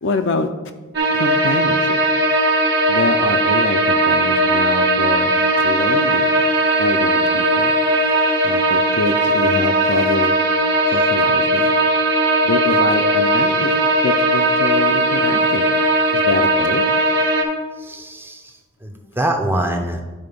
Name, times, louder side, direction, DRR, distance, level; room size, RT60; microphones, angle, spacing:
voice 1, 0.0-0.5 1.1-2.0 2.9-6.3 6.8-7.7 8.4-10.3 10.9-11.7 12.4-13.7 14.0-15.7 16.1-16.8, left 3 dB, 60° left, 6 dB, 0.5 m, -25 dB
sound 1, 0.9-17.4, right 1 dB, 55° right, 1.4 m, -17 dB
voice 2, 17.8-20.0, right 1 dB, 10° right, 4 dB, 0.6 m, -24 dB
11.0 x 3.7 x 5.2 m, 1.2 s
head